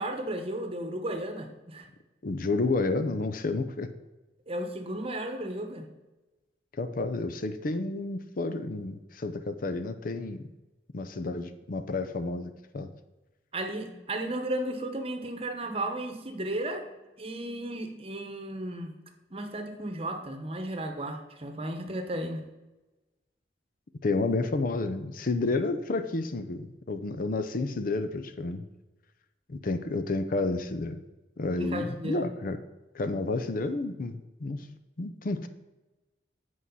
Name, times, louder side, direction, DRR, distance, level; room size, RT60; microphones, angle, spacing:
voice 1, 0.0-1.9 4.5-5.9 13.5-16.9 17.2-19.0 19.3-22.4 31.6-32.2, right 1 dB, 35° right, 5 dB, 1.0 m, -34 dB
voice 2, 2.2-3.9 6.8-10.4 10.9-12.9 24.0-28.6 29.5-31.0 31.4-32.6 32.9-34.7 35.0-35.5, left 3 dB, 50° left, 10 dB, 0.6 m, -30 dB
8.2 x 4.7 x 5.5 m, 1.1 s
head